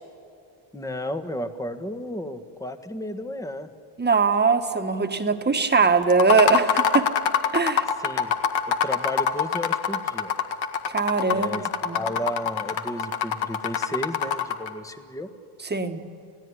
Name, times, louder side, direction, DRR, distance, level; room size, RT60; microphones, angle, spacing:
voice 1, 0.7-3.7 8.0-8.4 8.7-10.3 11.3-11.7 11.9-15.3, left 1 dB, 5° left, 8 dB, 1.4 m, -33 dB
voice 2, 4.0-7.1 7.5-7.9 10.9-11.6 11.8-12.0 15.7-16.0, right 4 dB, 20° right, 6 dB, 1.7 m, -21 dB
sound 1, 6.1-14.7, left 8 dB, 60° left, 1.9 m, -24 dB
29.0 x 17.0 x 9.9 m, 2.5 s
cardioid pair, 115°, 49 cm